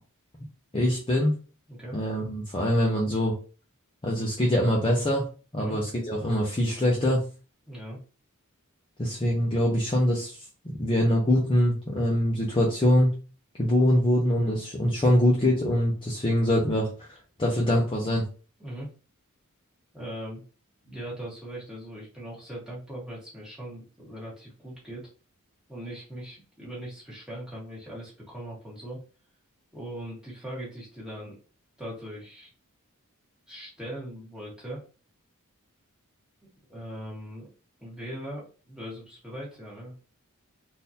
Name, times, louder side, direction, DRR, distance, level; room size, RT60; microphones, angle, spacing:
voice 1, 0.7-1.3 1.9-3.3 4.0-5.3 5.5-7.2 9.0-10.4 10.6-13.1 13.6-18.2, left 1 dB, 25° left, -3 dB, 0.6 m, -24 dB
voice 2, 7.7-8.0 18.6-18.9 19.9-20.4 20.8-25.0 25.7-29.0 29.7-31.4 31.8-32.5 33.5-34.8 36.7-37.5 37.8-40.0, right 1 dB, 5° right, -6 dB, 1.4 m, -40 dB
3.8 x 2.6 x 2.7 m, 0.36 s
head